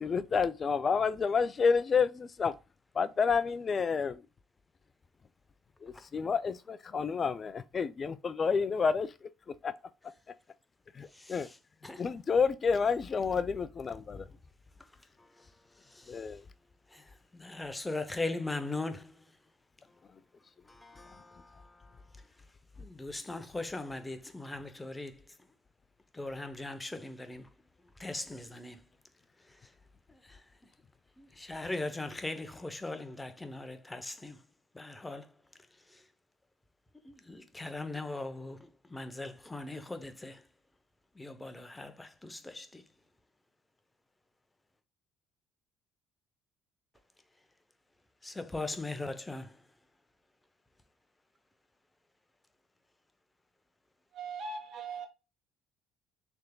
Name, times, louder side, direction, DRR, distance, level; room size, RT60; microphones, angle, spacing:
voice 1, 0.0-2.1 2.4-2.5 3.0-4.1 6.1-9.1 11.3-11.5 12.0-14.2 16.1-16.4, left 5 dB, 35° left, 0.4 m, -29 dB
voice 2, 11.1-11.6 11.8-12.0 15.9-16.2 16.9-17.0 17.3-19.2 20.7-22.0 22.8-25.2 26.1-27.5 28.0-28.8 30.3-30.4 31.2-34.4 34.7-35.3 35.9-36.0 37.0-40.4 41.2-42.8 48.2-49.5, left 2 dB, 15° left, 0.8 m, -39 dB
voice 3, 54.1-55.1, right 4 dB, 60° right, 1.5 m, -39 dB
6.4 x 3.5 x 2.3 m
supercardioid pair, 85°, 0 cm